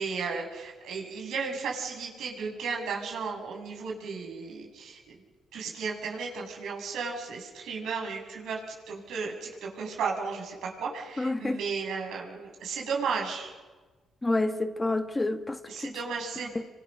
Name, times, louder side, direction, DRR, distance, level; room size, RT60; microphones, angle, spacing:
voice 1, 0.0-5.1 5.5-8.6 8.9-13.5 15.7-16.5, right 5 dB, 80° right, 7.8 m, -34 dB
voice 2, 11.2-11.6 14.2-15.9 16.5-16.7, left 2 dB, 15° left, 1.4 m, -29 dB
28.0 x 25.5 x 6.7 m
cardioid pair, 90°, 0 cm